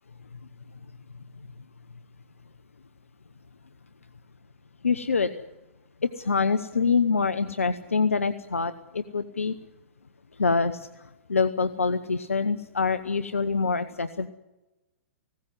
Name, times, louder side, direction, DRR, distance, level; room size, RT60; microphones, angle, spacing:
voice 1, 4.8-5.5 6.0-9.6 10.4-11.0 11.3-14.3, left 4 dB, 85° left, 10 dB, 1.0 m, -25 dB
19.5 x 17.0 x 9.6 m, 1.0 s
hypercardioid pair, 115°, 7 cm